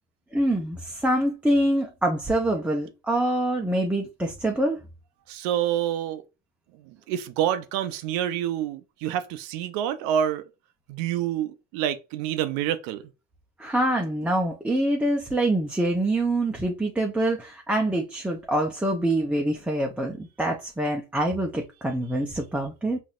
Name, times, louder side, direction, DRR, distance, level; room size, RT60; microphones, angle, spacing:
voice 1, 0.3-4.8 13.6-23.0, right 1 dB, 5° right, 0.6 m, -25 dB
voice 2, 5.3-6.2 6.7-10.4 10.9-13.0, right 10 dB, 70° right, 0.6 m, -27 dB
4.0 x 2.6 x 2.4 m
hypercardioid pair, 75°, 36 cm